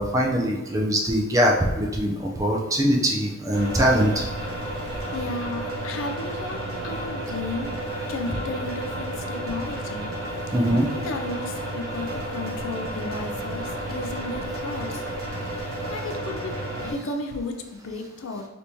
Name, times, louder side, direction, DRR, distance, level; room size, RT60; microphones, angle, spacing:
voice 1, 0.0-4.2 10.5-10.9, equal, 15° right, -1 dB, 0.3 m, -22 dB
sound 1, 3.5-16.9, right 1 dB, 65° right, 0.8 m, -32 dB
voice 2, 4.9-7.7 8.1-10.1 10.6-15.0 15.9-18.5, left 2 dB, 60° left, 5 dB, 0.4 m, -34 dB
3.4 x 2.9 x 2.6 m, 1.2 s
head